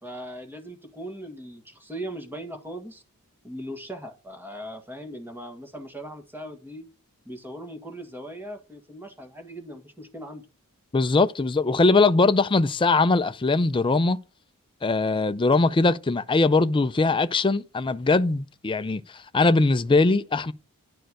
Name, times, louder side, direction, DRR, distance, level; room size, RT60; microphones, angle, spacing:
voice 1, 0.0-3.0 3.4-6.9 7.3-10.5, equal, 10° right, 1.7 m, -39 dB
voice 2, 10.9-14.2 14.8-20.5, left 3 dB, 20° left, 0.4 m, -21 dB
11.5 x 4.5 x 6.1 m
head